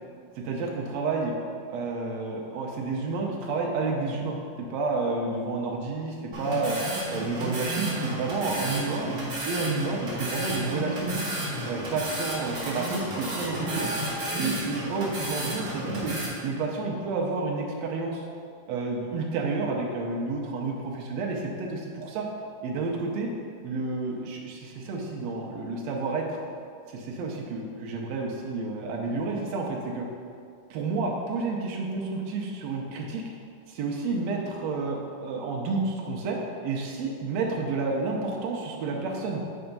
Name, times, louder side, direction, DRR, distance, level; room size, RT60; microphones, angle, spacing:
voice 1, 0.3-1.3 1.7-6.8 7.1-9.1 9.4-11.1 11.7-13.9 14.4-16.1 16.4-18.2 18.7-20.7 21.1-22.3 22.6-23.3 23.6-26.3 26.9-30.1 30.7-33.2 33.7-36.4 36.6-39.4, right 3 dB, 85° right, -1 dB, 1.5 m, -30 dB
cash register printout, 6.3-16.3, right 1 dB, 50° right, 0.9 m, -32 dB
8.8 x 3.4 x 5.3 m, 2.4 s
omnidirectional pair, 3.9 m